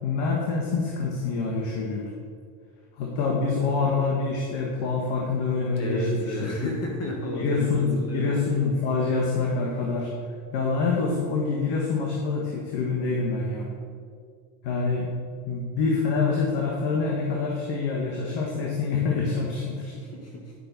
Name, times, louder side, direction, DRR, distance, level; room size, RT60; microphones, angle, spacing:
voice 1, 0.0-2.1 3.0-6.7 7.3-10.1 10.5-13.7 14.6-15.1 15.4-19.9, left 4 dB, 55° left, -1 dB, 1.5 m, -26 dB
voice 2, 5.7-8.4 19.9-20.5, equal, 30° left, 0 dB, 1.5 m, -32 dB
9.9 x 5.8 x 4.1 m, 2.1 s
supercardioid pair, 100°, 49 cm